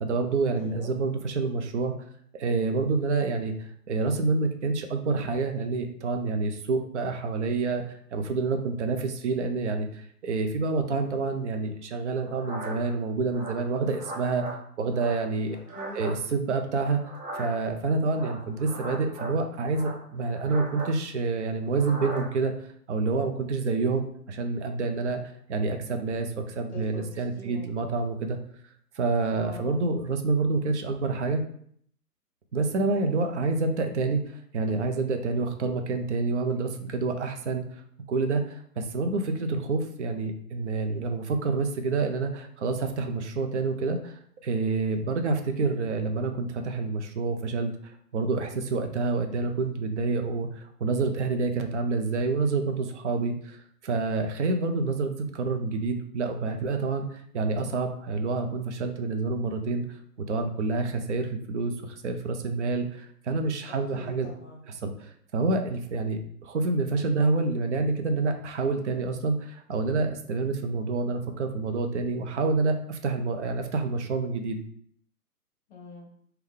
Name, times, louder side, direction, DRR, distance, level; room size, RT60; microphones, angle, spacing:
voice 1, 0.0-1.9 2.3-3.5 3.9-14.4 14.8-15.6 15.9-17.0 17.3-22.5 22.9-25.2 25.5-28.4 29.0-31.4 32.5-34.2 34.5-37.6 38.1-53.6 53.8-59.8 60.2-64.3 64.7-74.6, right 3 dB, 50° right, 5 dB, 0.5 m, -28 dB
voice 2, 0.5-1.0 15.5-16.0 26.7-27.7 29.3-29.8 32.9-33.3 63.7-64.6 75.7-76.1, left 2 dB, 45° left, -2 dB, 0.9 m, -44 dB
sound 1, 12.2-12.9 13.3-14.6 14.9-16.2 17.0-17.7 18.1-19.4 19.7-20.9 21.7-22.3, right 2 dB, 30° right, 0.9 m, -39 dB
3.5 x 2.2 x 3.5 m, 0.63 s
hypercardioid pair, 145°, 47 cm